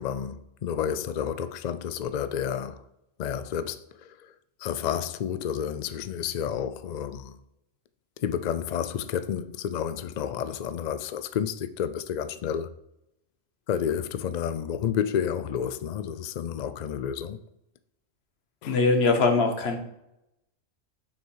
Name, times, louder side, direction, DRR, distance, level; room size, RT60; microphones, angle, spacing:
voice 1, 0.0-2.8 3.2-4.3 4.6-7.4 8.2-12.7 13.7-17.4 18.6-18.8, left 8 dB, 90° left, 0.3 m, -30 dB
voice 2, 18.7-19.8, left 3 dB, 55° left, 1.4 m, -22 dB
7.4 x 5.8 x 4.7 m
omnidirectional pair, 1.3 m